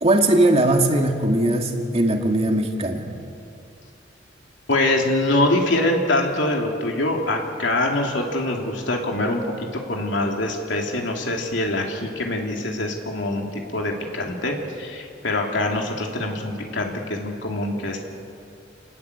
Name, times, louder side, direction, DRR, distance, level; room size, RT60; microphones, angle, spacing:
voice 1, 0.0-3.1, right 1 dB, 35° right, 3 dB, 2.4 m, -19 dB
voice 2, 4.7-18.0, left 1 dB, 75° left, 1 dB, 3.1 m, -24 dB
29.5 x 19.5 x 8.2 m, 2.6 s
head